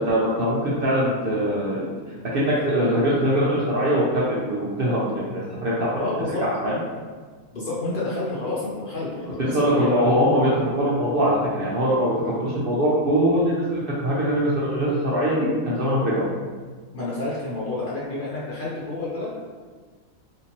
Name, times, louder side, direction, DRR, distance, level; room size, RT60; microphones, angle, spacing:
voice 1, 0.0-1.9 2.3-5.9 6.4-6.8 9.4-16.2, equal, 55° right, -7 dB, 0.7 m, -22 dB
voice 2, 6.0-6.4 7.5-10.1 16.9-19.3, left 2 dB, 50° left, -7 dB, 0.7 m, -29 dB
3.4 x 2.8 x 2.9 m, 1.5 s
omnidirectional pair, 1.4 m